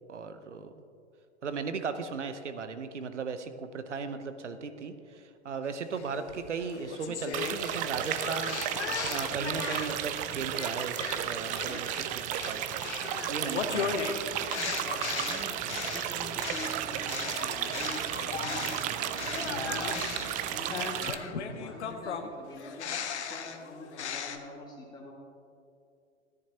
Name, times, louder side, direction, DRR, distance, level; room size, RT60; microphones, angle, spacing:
voice 1, 0.1-0.7 1.4-8.6 9.1-12.8 13.3-14.3 21.5-21.6, right 5 dB, 85° right, 10 dB, 0.8 m, -37 dB
sound 1, 6.0-10.1 10.6-18.9 19.2-24.4, left 6 dB, 75° left, 0.9 m, -37 dB
sound 2, 7.3-21.1, right 11 dB, 25° right, 0.4 m, -34 dB
sound 3, 7.3-7.4 8.0-8.6 9.1-9.3 9.7-10.2 10.9-11.0 11.5-11.7, right 5 dB, 40° right, 2.9 m, -56 dB
voice 2, 13.9-20.0 20.4-22.9 23.3-25.1, left 2 dB, 10° left, -3 dB, 2.2 m, -45 dB
13.5 x 10.5 x 2.9 m, 2.5 s
hypercardioid pair, 100°, 35 cm